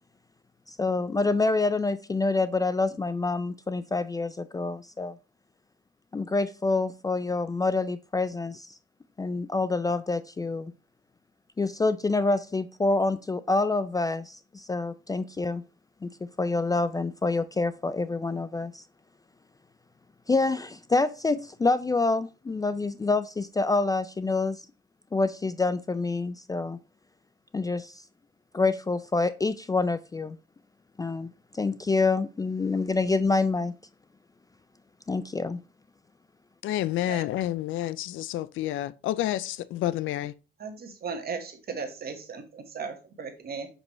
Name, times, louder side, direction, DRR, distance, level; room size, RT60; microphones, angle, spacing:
voice 1, 0.7-5.1 6.1-8.7 9.2-10.7 11.6-15.6 16.0-16.1 16.4-18.8 20.3-24.6 25.1-26.8 27.5-28.0 28.5-30.4 31.0-33.7 35.1-35.6, left 3 dB, 20° left, 0.4 m, -27 dB
voice 2, 36.6-40.3, left 13 dB, 80° left, 0.4 m, -29 dB
voice 3, 40.6-43.7, right 5 dB, 50° right, 1.4 m, -36 dB
5.9 x 5.3 x 3.1 m
cardioid pair, 90°, 20 cm